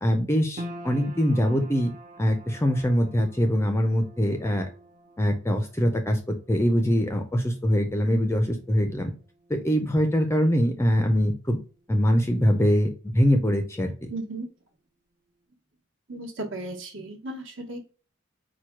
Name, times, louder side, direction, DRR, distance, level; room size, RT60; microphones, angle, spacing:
voice 1, 0.0-1.9 2.2-4.7 5.2-9.1 9.5-11.6 11.9-12.9 13.1-13.9, equal, 10° left, 5 dB, 0.4 m, -23 dB
sound 1, 0.6-13.0 13.2-14.2 14.6-14.7, equal, 35° right, 0.6 m, -47 dB
voice 2, 14.1-14.5 16.1-17.8, right 2 dB, 60° right, 2 dB, 1.2 m, -35 dB
4.5 x 2.2 x 4.4 m, 0.35 s
head